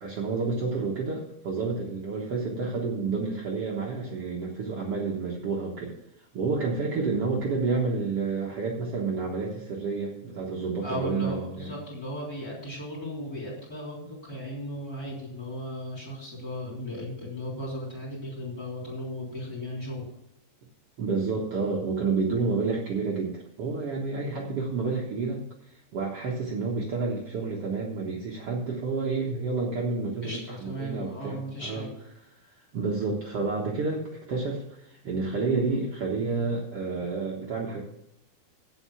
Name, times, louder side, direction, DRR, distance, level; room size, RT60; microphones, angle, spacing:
voice 1, 0.0-6.0 6.3-11.8 21.0-31.9 32.5-37.8, right 4 dB, 80° right, -2 dB, 1.3 m, -30 dB
voice 2, 10.8-20.1 30.2-31.9, equal, 25° left, -1 dB, 3.5 m, -36 dB
8.5 x 8.0 x 7.1 m, 0.82 s
omnidirectional pair, 4.8 m